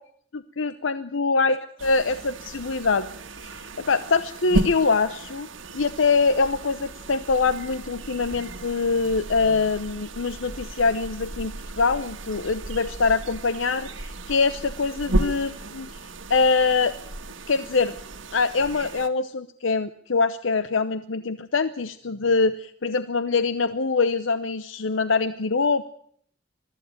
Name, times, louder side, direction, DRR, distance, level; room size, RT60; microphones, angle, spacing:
voice 1, 0.3-3.1 3.4-5.5 5.7-15.9 16.3-16.9 17.5-18.0 18.3-25.8, left 4 dB, 80° left, 12 dB, 0.8 m, -24 dB
sound 1, 1.8-19.1, right 1 dB, 80° right, 1.6 m, -34 dB
22.5 x 14.0 x 9.4 m, 0.65 s
head